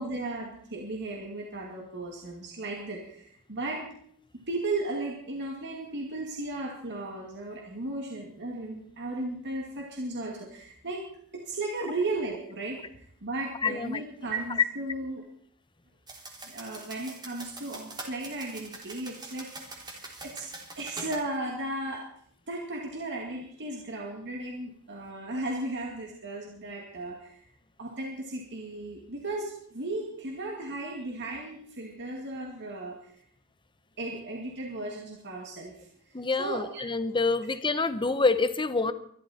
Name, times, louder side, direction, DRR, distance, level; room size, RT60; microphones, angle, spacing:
voice 1, 0.0-3.8 4.3-11.0 11.3-15.2 16.4-20.5 20.7-22.0 22.5-27.4 27.8-33.1 34.0-35.9 36.4-36.8, right 2 dB, 55° right, 0 dB, 2.3 m, -35 dB
voice 2, 13.6-14.0 36.1-38.9, left 3 dB, 20° left, 12 dB, 0.9 m, -27 dB
sound 1, 16.1-21.3, right 2 dB, 20° right, 3.1 m, -44 dB
23.0 x 12.5 x 4.3 m, 0.67 s
head